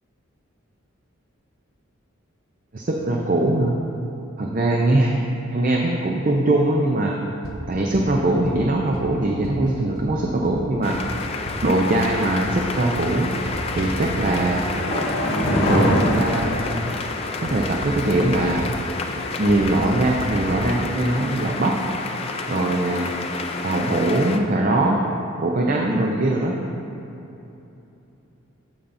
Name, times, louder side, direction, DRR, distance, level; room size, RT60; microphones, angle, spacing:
voice 1, 2.7-3.8 4.4-5.1 5.5-7.2 7.7-11.1 11.6-13.3 13.7-14.6 15.7-16.6 17.5-18.7 19.4-21.7 22.5-23.1 23.6-25.0 25.4-26.5, right 1 dB, 40° right, 0 dB, 0.5 m, -21 dB
sound 1, 7.4-7.5 7.9-8.0 8.4-8.5 8.9-9.0 9.4-9.5 9.9-10.0 10.4-10.5 10.9-11.0 11.5-11.6 12.0-12.1 12.4-12.5 13.0-13.1 13.5-14.5 15.4-16.5 17.5-17.6 17.8-18.2 18.4-18.5 19.5-19.6 19.8-19.9 20.2-20.3 20.5-20.6, right 1 dB, 80° right, 1.0 m, -33 dB
sound 2, 10.8-24.4, left 4 dB, 25° left, 0.3 m, -30 dB
sound 3, 13.8-17.5 17.8-17.9, equal, 45° left, 0.9 m, -24 dB
14.0 x 5.5 x 2.6 m, 2.9 s
head